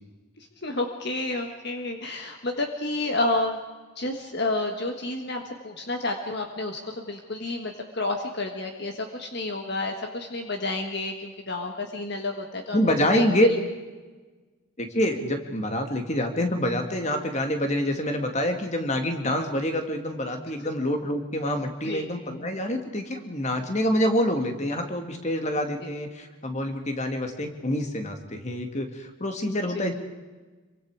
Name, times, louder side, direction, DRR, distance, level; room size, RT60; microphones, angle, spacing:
voice 1, 0.4-3.6 4.0-12.8 13.1-13.3 21.8-22.1 25.8-25.9, left 2 dB, 50° left, 4 dB, 1.6 m, -30 dB
voice 2, 12.7-13.5 14.8-29.9, equal, 30° left, 5 dB, 2.2 m, -26 dB
27.0 x 24.0 x 4.9 m, 1.3 s
head